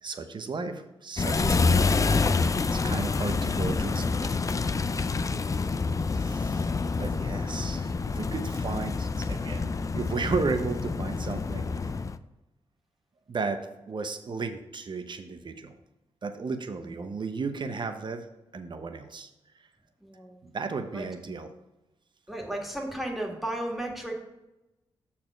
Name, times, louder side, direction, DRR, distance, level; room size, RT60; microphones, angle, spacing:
voice 1, 0.0-2.3 2.7-4.6 6.1-6.7 7.0-11.9 13.3-13.6 13.9-15.7 16.2-18.3 18.5-19.3 20.4-21.5, right 4 dB, 45° right, 8 dB, 0.9 m, -34 dB
sound 1, 1.2-12.2, left 4 dB, 30° left, 0.4 m, -27 dB
voice 2, 5.1-5.5 16.8-16.9 20.0-20.4 20.9-21.1 22.3-24.1, right 1 dB, ahead, 0 dB, 2.0 m, -35 dB
6.8 x 4.3 x 6.1 m, 0.96 s
cardioid pair, 55°, 11 cm